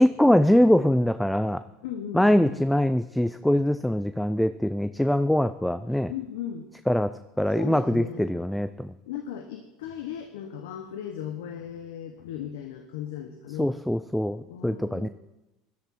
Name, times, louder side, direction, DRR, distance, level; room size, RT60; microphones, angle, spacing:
voice 1, 0.0-1.6 2.1-6.1 6.9-7.1 7.4-8.9 13.6-15.1, left 1 dB, 5° left, 12 dB, 0.5 m, -23 dB
voice 2, 1.8-2.6 6.1-6.7 7.5-8.3 9.1-13.7 14.3-15.1, left 9 dB, 80° left, 6 dB, 1.1 m, -37 dB
18.0 x 12.0 x 4.4 m, 0.99 s
hypercardioid pair, 80°, 0 cm